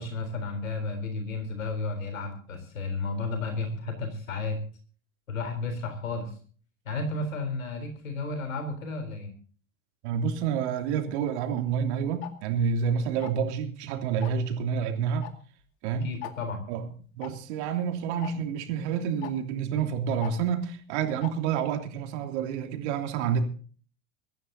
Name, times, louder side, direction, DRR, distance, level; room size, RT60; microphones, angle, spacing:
voice 1, 0.0-4.6 5.3-6.4 6.9-9.3 15.9-16.6, left 3 dB, 75° left, 3.9 m, -33 dB
voice 2, 10.0-15.3 15.8-16.1 16.7-16.8 17.1-23.4, right 7 dB, 55° right, 3.0 m, -28 dB
Tick-tock, 12.2-12.3 13.2-13.5 14.2-14.5 15.2-15.3 15.6-15.7 16.2-16.3 17.2-17.3 18.2-18.3 19.2-19.3 20.2-20.3 21.2-21.3, left 15 dB, 55° left, 2.2 m, -38 dB
24.0 x 14.5 x 2.8 m
figure-of-eight pair, 85°, 41 cm